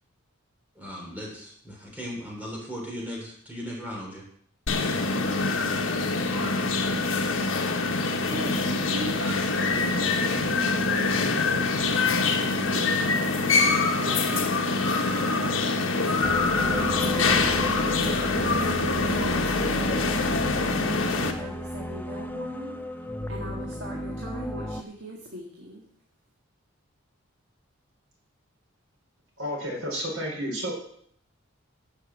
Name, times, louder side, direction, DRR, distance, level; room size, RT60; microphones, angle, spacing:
voice 1, 0.8-4.2, equal, 10° right, -2 dB, 3.1 m, -37 dB
sound 1, 4.7-21.3, left 3 dB, 65° left, 1.3 m, -25 dB
voice 2, 8.1-14.7 15.4-22.8 23.3-25.9, right 1 dB, 60° right, -1 dB, 1.8 m, -40 dB
sound 2, 16.2-24.8, equal, 10° left, 0.5 m, -33 dB
voice 3, 29.4-30.8, equal, 90° right, -1 dB, 4.7 m, -31 dB
11.5 x 5.7 x 7.5 m, 0.66 s
head